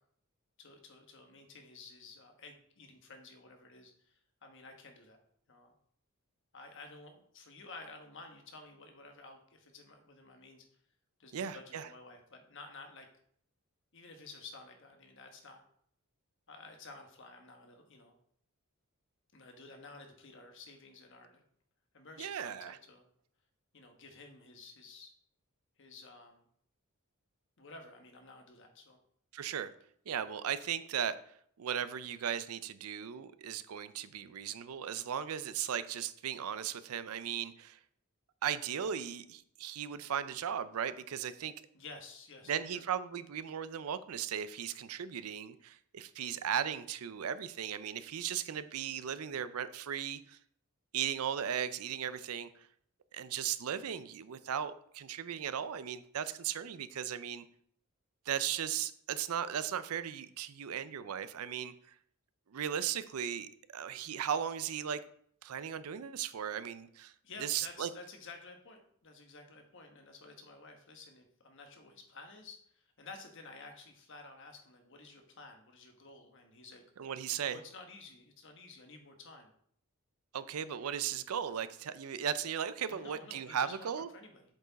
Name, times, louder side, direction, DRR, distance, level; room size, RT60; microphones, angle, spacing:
voice 1, 0.6-5.2 5.5-5.7 6.5-10.6 11.2-13.1 13.9-15.6 16.5-18.2 19.3-21.4 21.9-23.0 23.7-25.1 25.8-26.4 27.6-29.0 41.7-42.9 67.2-76.8 77.4-79.5 82.9-84.4, left 3 dB, 55° left, 4 dB, 1.2 m, -52 dB
voice 2, 11.3-11.9 22.2-22.8 29.3-29.7 30.1-31.2 31.6-37.8 38.4-41.5 42.5-50.4 50.9-52.5 53.1-57.4 58.3-61.7 62.5-65.0 65.4-67.1 67.4-67.9 77.0-77.6 80.3-84.1, right 8 dB, 75° right, 14 dB, 0.5 m, -37 dB
7.7 x 4.6 x 4.0 m, 0.65 s
head